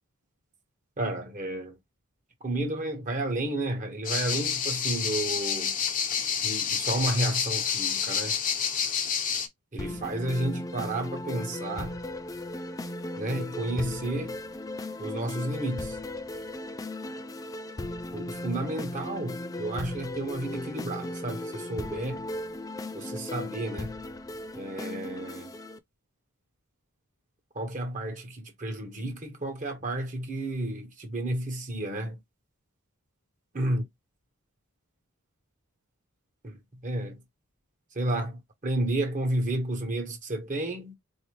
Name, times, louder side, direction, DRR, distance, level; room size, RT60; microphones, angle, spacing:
voice 1, 1.0-1.8 2.4-5.7 6.4-8.4 9.7-12.0 13.2-14.4 15.0-16.0 18.1-22.3 22.9-23.9 24.5-25.5 27.5-32.2 33.5-33.8 36.4-36.6 36.8-37.2 37.9-41.0, right 1 dB, 35° right, 0.9 m, -31 dB
sound 1, 4.0-9.5, left 7 dB, 40° left, 0.7 m, -29 dB
sound 2, 9.8-25.8, left 1 dB, 15° left, 0.3 m, -37 dB
4.1 x 2.6 x 3.0 m
head